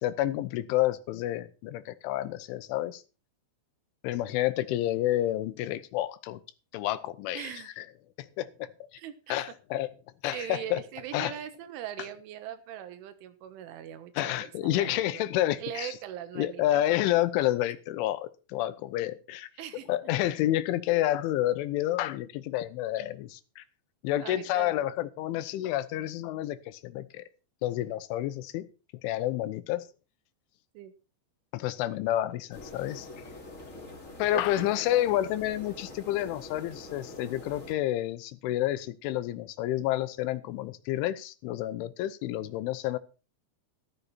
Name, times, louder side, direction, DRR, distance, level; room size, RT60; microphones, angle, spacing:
voice 1, 0.0-3.0 4.0-6.4 6.7-7.8 8.2-8.7 9.3-9.9 10.2-10.8 11.1-11.4 14.2-16.0 16.4-19.5 19.9-23.6 24.0-27.2 27.6-28.7 29.0-29.9 31.5-33.1 34.2-43.0, left 14 dB, 85° left, 13 dB, 3.4 m, -29 dB
voice 2, 7.3-7.7 9.0-9.5 10.3-15.3 15.6-17.0 19.6-19.9 24.2-24.9 30.8-30.9 34.3-35.1, right 10 dB, 85° right, 11 dB, 3.8 m, -41 dB
sound 1, 32.5-37.7, left 2 dB, 25° left, 2.1 m, -45 dB
14.0 x 13.5 x 4.3 m, 0.33 s
omnidirectional pair, 5.4 m